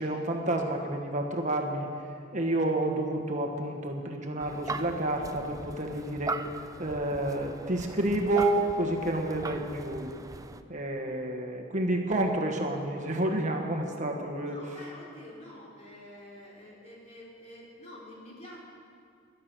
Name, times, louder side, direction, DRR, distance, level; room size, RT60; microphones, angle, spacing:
voice 1, 0.0-1.9 2.3-6.4 6.8-10.1 10.7-14.6, right 1 dB, 40° right, 2 dB, 1.5 m, -29 dB
sound 1, 4.4-10.6, right 3 dB, 15° right, 0.5 m, -40 dB
voice 2, 14.4-18.6, left 1 dB, 35° left, -4 dB, 3.6 m, -47 dB
15.0 x 11.5 x 6.2 m, 2.3 s
head